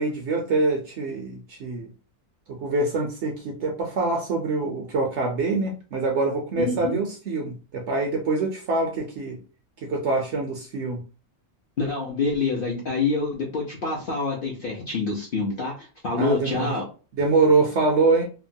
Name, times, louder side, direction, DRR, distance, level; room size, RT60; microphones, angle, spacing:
voice 1, 0.0-1.9 2.5-9.4 9.8-11.0 16.2-16.7 17.1-18.2, right 3 dB, 65° right, 1 dB, 0.7 m, -24 dB
voice 2, 6.6-7.0 11.8-16.9, left 3 dB, 55° left, -3 dB, 0.6 m, -26 dB
2.9 x 2.1 x 2.6 m, 0.35 s
omnidirectional pair, 1.6 m